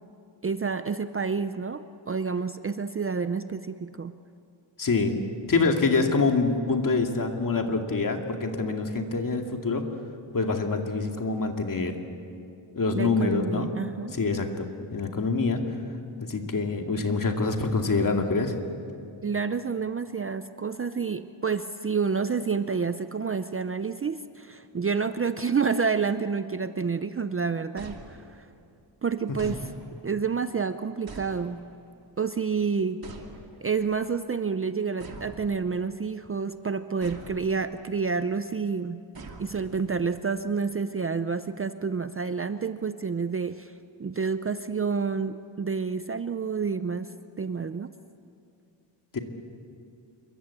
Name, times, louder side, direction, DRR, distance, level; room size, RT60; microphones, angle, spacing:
voice 1, 0.4-4.2 12.9-14.1 19.2-28.5 29.0-29.7 30.0-31.7 32.2-33.0 33.6-39.0 39.4-43.7 44.0-47.9, right 5 dB, 30° right, 11 dB, 0.5 m, -29 dB
voice 2, 4.8-5.2 5.5-9.9 10.3-12.0 12.7-13.7 14.1-15.6 16.2-18.5 49.1-49.2, left 3 dB, 40° left, 3 dB, 2.4 m, -25 dB
sound 1, 27.8-28.6 29.4-30.2 31.1-31.9 33.0-33.8 35.0-36.0 37.0-37.8 39.1-40.1, right 4 dB, 45° right, 2.7 m, -45 dB
27.0 x 23.0 x 8.4 m, 2.5 s
wide cardioid pair, 145°, 48 cm